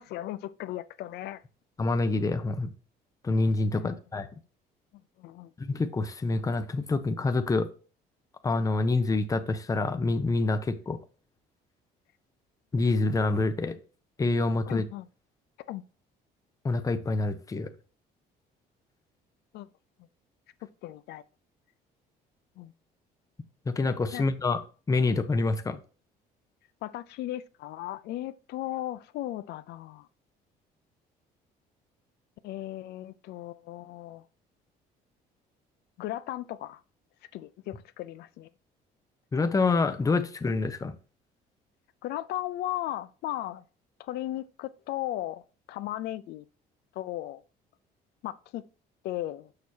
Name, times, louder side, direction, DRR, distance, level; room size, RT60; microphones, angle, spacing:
voice 1, 0.0-1.4 3.8-3.9 5.2-5.5 14.7-15.1 15.7-15.8 19.5-19.7 20.8-21.2 22.6-22.7 24.1-24.2 26.8-30.1 32.4-34.2 36.0-36.8 37.3-38.5 42.0-43.6 44.0-45.4 45.7-46.5 47.0-47.4 48.2-48.6 49.0-49.5, left 14 dB, 75° left, 0.5 m, -36 dB
voice 2, 1.8-2.7 3.2-4.3 5.6-7.7 8.4-11.0 12.7-13.8 14.2-14.8 16.6-17.7 23.7-24.6 24.9-25.8 39.3-40.9, left 3 dB, 20° left, 0.7 m, -26 dB
6.6 x 6.1 x 2.8 m
cardioid pair, 110°, 17 cm